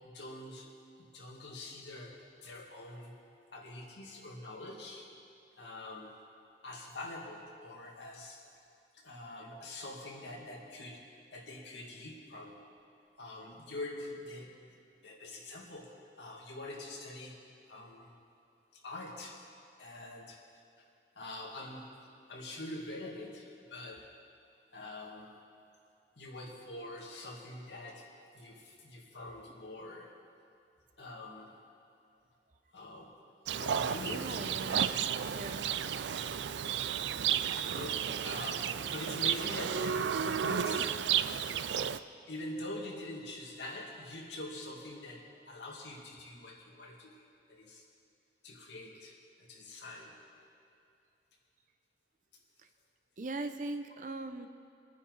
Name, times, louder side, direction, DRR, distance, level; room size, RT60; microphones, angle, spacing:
voice 1, 0.0-3.1 3.5-5.2 5.6-6.2 6.6-8.6 8.9-12.7 13.2-14.7 15.0-18.2 18.7-19.5 19.8-20.4 20.8-20.9 21.2-24.2 24.7-25.4 26.2-30.2 31.0-31.6 32.7-35.0 36.3-36.7 37.7-41.1 42.3-47.8 48.4-50.3, left 2 dB, 90° left, -2 dB, 2.4 m, -45 dB
Livestock farm animals working animals, 33.5-42.0, right 8 dB, 90° right, 0.4 m, -32 dB
voice 2, 34.0-35.0 35.3-35.7 53.2-54.5, right 2 dB, 45° right, 8 dB, 0.8 m, -40 dB
25.5 x 10.0 x 4.1 m, 2.5 s
head